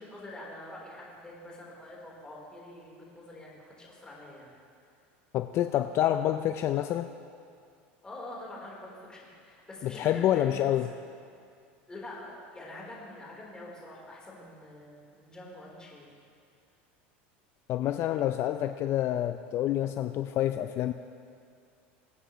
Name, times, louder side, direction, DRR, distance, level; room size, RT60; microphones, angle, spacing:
voice 1, 0.0-4.5 6.2-6.3 8.0-11.0 11.9-16.1, left 1 dB, 15° left, -4 dB, 3.7 m, -45 dB
voice 2, 5.3-7.1 9.8-10.9 17.7-20.9, left 12 dB, 45° left, 9 dB, 0.4 m, -27 dB
23.5 x 8.9 x 3.1 m, 2.3 s
supercardioid pair, 115°, 6 cm